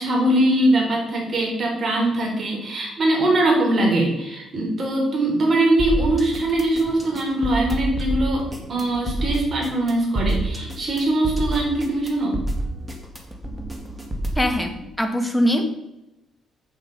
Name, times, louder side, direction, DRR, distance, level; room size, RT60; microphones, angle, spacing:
voice 1, 0.0-8.4 8.7-12.4, right 1 dB, 45° right, -1 dB, 3.6 m, -21 dB
sound 1, 5.8-14.5, right 1 dB, 15° right, 2.0 m, -28 dB
voice 2, 14.3-15.7, equal, 5° left, 5 dB, 1.5 m, -22 dB
8.1 x 7.4 x 5.3 m, 0.93 s
cardioid pair, 90°, 0 cm